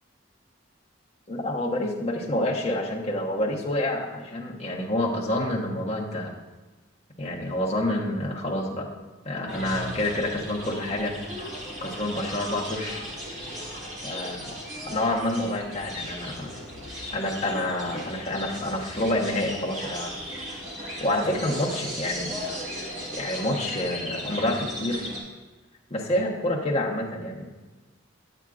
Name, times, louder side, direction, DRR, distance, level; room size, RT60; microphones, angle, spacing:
voice 1, 1.3-6.3 7.2-8.9 9.2-11.1 11.8-13.0 14.0-14.6 14.8-16.5 17.1-20.2 21.0-22.3 23.1-25.1 25.9-27.5, left 1 dB, 30° left, -3 dB, 1.1 m, -28 dB
sound 1, 9.5-25.2, equal, 40° right, 1.9 m, -36 dB
8.9 x 8.9 x 2.4 m, 1.2 s
head